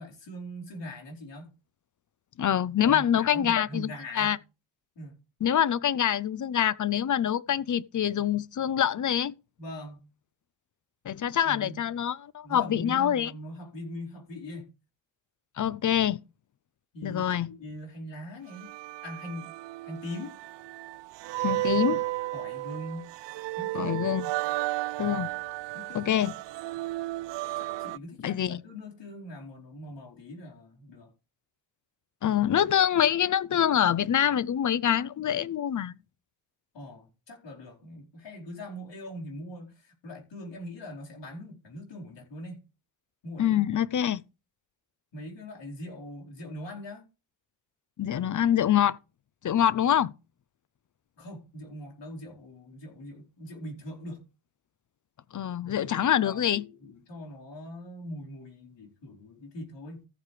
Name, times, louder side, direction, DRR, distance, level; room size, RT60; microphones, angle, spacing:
voice 1, 0.0-1.5 2.8-4.4 4.9-5.2 9.6-10.1 11.4-11.8 12.4-14.7 16.9-18.7 19.0-19.5 19.8-20.3 22.3-23.1 23.6-24.0 25.7-26.3 27.4-31.1 36.7-42.6 43.2-43.6 45.1-47.0 51.2-54.2 55.6-60.1, left 1 dB, 60° left, 4.7 m, -42 dB
voice 2, 2.4-4.4 5.4-9.3 11.0-13.3 15.6-16.2 17.0-17.5 21.4-22.0 23.7-24.3 25.0-25.3 25.9-26.3 28.2-28.6 32.2-35.9 43.4-44.2 48.0-49.0 49.4-50.1 55.3-56.7, left 10 dB, 40° left, 0.7 m, -25 dB
sound 1, 18.5-28.0, right 18 dB, 60° right, 0.5 m, -33 dB
14.5 x 8.1 x 3.4 m
supercardioid pair, 60°, 48 cm